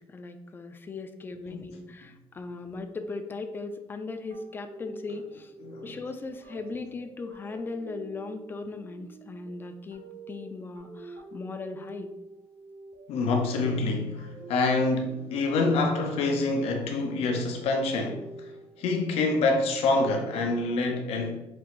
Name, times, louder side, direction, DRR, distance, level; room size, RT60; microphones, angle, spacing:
voice 1, 0.0-5.5 5.8-12.1, left 3 dB, 20° left, 0.3 m, -38 dB
sound 1, 4.3-19.7, right 3 dB, 90° right, 1.2 m, -48 dB
voice 2, 5.6-5.9 13.1-21.4, left 3 dB, 80° left, 0.7 m, -26 dB
6.1 x 2.6 x 2.9 m
cardioid pair, 160°, 10 cm